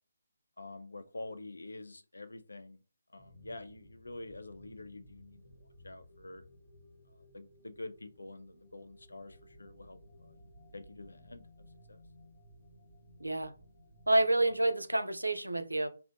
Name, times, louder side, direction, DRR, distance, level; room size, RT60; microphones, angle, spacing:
voice 1, 0.6-2.8 3.1-6.4 7.1-12.0, left 2 dB, 70° left, 0.3 m, -47 dB
sound 1, 3.2-14.7, equal, 15° left, 0.9 m, -58 dB
voice 2, 13.2-13.5 14.1-15.9, right 2 dB, 80° right, 0.4 m, -28 dB
2.7 x 2.0 x 2.4 m
figure-of-eight pair, 145°, 0 cm